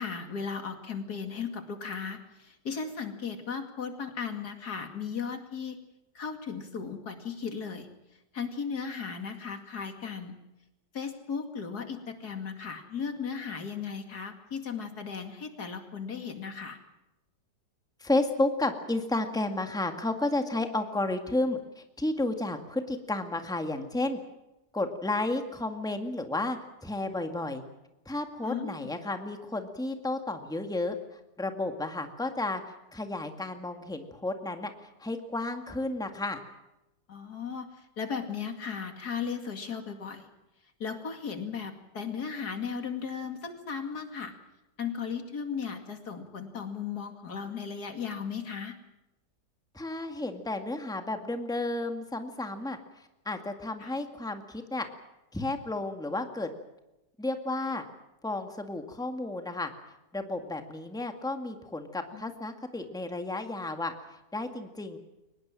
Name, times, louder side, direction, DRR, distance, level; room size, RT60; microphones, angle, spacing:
voice 1, 0.0-5.8 6.1-7.9 8.3-10.4 10.9-16.8 28.4-28.9 37.1-37.7 38.0-40.3 40.8-44.3 44.8-48.8 53.8-53.9 62.1-62.2, left 6 dB, 75° left, 6 dB, 2.9 m, -36 dB
voice 2, 18.0-24.2 24.7-27.6 28.1-32.6 32.9-34.7 35.0-36.4 49.7-54.9 55.3-56.5 57.2-57.8 58.2-59.7 60.1-65.0, left 2 dB, ahead, 6 dB, 1.9 m, -32 dB
23.5 x 20.0 x 7.6 m, 0.95 s
omnidirectional pair, 1.7 m